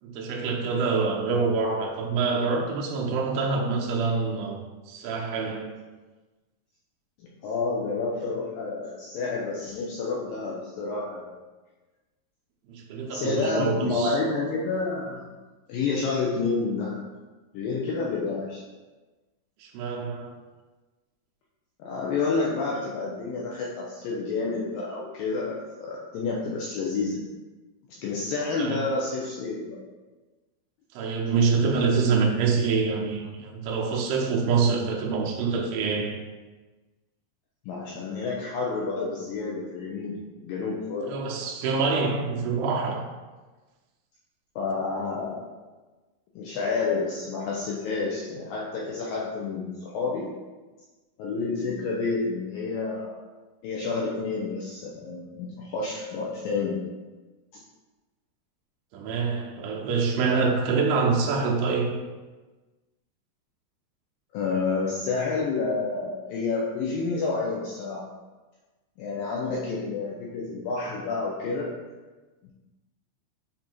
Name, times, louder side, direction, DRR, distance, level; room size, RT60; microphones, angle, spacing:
voice 1, 0.0-4.6 4.9-5.8 12.7-14.2 19.6-20.4 28.6-28.9 30.9-36.2 41.0-43.1 58.9-62.0, right 4 dB, 75° right, -1 dB, 2.5 m, -26 dB
voice 2, 7.2-11.4 13.1-15.3 15.7-17.0 17.5-18.6 21.8-27.3 27.9-29.8 37.7-41.1 44.6-45.4 46.4-50.3 51.2-53.2 53.6-56.8 64.3-68.1 69.0-71.7, left 4 dB, 80° left, -4 dB, 2.0 m, -29 dB
7.7 x 2.8 x 4.5 m, 1.2 s
omnidirectional pair, 4.8 m